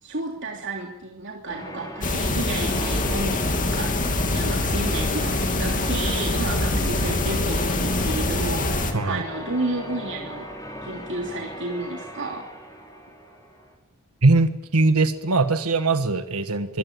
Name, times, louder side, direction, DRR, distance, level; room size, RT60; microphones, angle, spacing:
voice 1, 0.0-3.9 4.3-10.5 10.8-12.5, right 2 dB, 55° right, 0 dB, 3.1 m, -31 dB
Church bell, 1.5-13.7, equal, 15° left, 5.4 m, -38 dB
sound 1, 2.0-8.9, left 2 dB, 35° left, 2.7 m, -24 dB
voice 2, 8.9-9.2 14.2-16.8, right 3 dB, 85° right, 9 dB, 1.5 m, -21 dB
24.0 x 17.5 x 9.5 m, 0.93 s
head